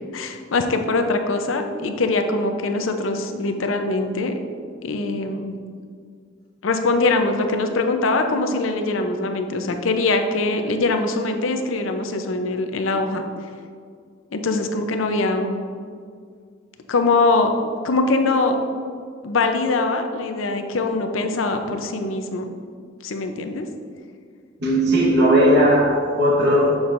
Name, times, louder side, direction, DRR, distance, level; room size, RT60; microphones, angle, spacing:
voice 1, 0.1-4.3 4.8-5.6 6.6-13.2 14.3-15.6 16.9-17.5 17.8-18.6 19.2-22.5 23.0-23.6, left 3 dB, 80° left, 5 dB, 0.6 m, -22 dB
voice 2, 24.6-26.8, equal, 55° right, -3 dB, 1.1 m, -17 dB
7.1 x 6.2 x 2.5 m, 2.1 s
head